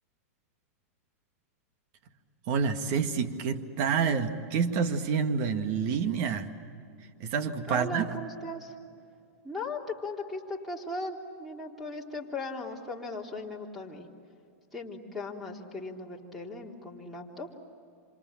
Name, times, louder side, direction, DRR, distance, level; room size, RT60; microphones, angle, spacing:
voice 1, 2.5-6.5 7.2-8.1, right 6 dB, 45° right, 8 dB, 2.0 m, -28 dB
voice 2, 7.7-8.7 9.4-14.1 14.7-17.5, left 2 dB, ahead, 2 dB, 3.4 m, -38 dB
27.5 x 27.5 x 7.4 m, 2.4 s
hypercardioid pair, 140°, 8 cm